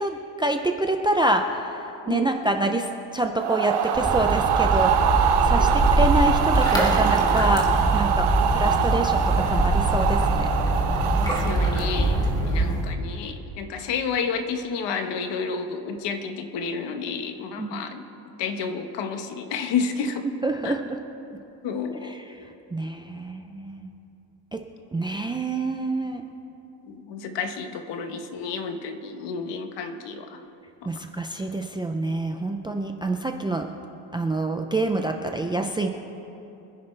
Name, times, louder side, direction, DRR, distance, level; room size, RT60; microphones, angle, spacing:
voice 1, 0.0-10.5 17.6-17.8 20.4-21.0 22.0-22.4 22.7-23.9 24.5-24.6 24.9-26.3 30.9-33.7 34.1-35.9, right 2 dB, 10° right, 5 dB, 0.3 m, -27 dB
voice 2, 2.0-2.5 5.5-5.8 8.4-8.5 11.1-18.0 18.4-20.3 20.6-20.8 21.6-22.2 26.8-30.4, left 5 dB, 70° left, 7 dB, 1.3 m, -31 dB
sound 1, 3.4-12.5, right 8 dB, 65° right, 1.0 m, -24 dB
sound 2, 3.9-12.8, right 1 dB, 10° left, 1.7 m, -23 dB
25.5 x 10.5 x 3.2 m, 2.9 s
cardioid pair, 170°, 44 cm